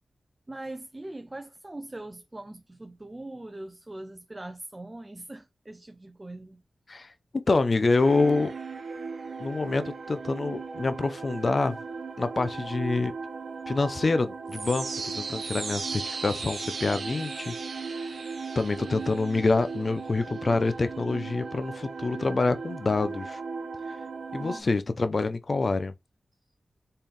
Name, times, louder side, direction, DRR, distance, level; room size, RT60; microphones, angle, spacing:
voice 1, 0.5-6.6 24.4-24.7, right 2 dB, 25° right, 0.5 m, -41 dB
voice 2, 6.9-8.5 9.4-11.8 12.2-13.1 13.7-18.1 18.5-23.4 24.3-25.9, left 3 dB, 50° left, 0.6 m, -26 dB
sound 1, 8.0-24.6, right 4 dB, 75° right, 0.8 m, -37 dB
4.4 x 3.6 x 3.2 m
wide cardioid pair, 65°, 0 cm